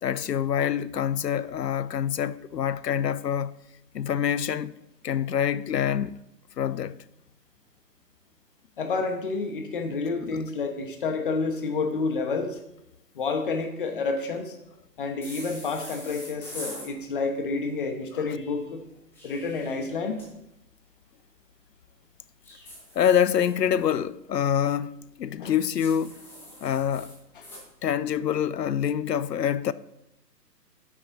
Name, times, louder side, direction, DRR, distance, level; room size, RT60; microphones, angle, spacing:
voice 1, 0.0-3.5 3.9-4.7 5.0-6.2 6.6-7.0 10.2-10.5 18.1-18.2 23.0-26.2 26.6-27.1 27.8-29.7, left 9 dB, 75° left, 0.6 m, -26 dB
voice 2, 8.8-12.6 13.1-14.5 15.0-18.8 19.2-20.2 25.4-25.5 27.4-27.5, left 4 dB, 30° left, 1.1 m, -29 dB
sound 1, 15.2-16.9 18.9-20.3 22.4-23.9 25.8-27.6, left 1 dB, 5° left, 1.0 m, -44 dB
9.7 x 7.2 x 4.0 m
figure-of-eight pair, 145°, 50 cm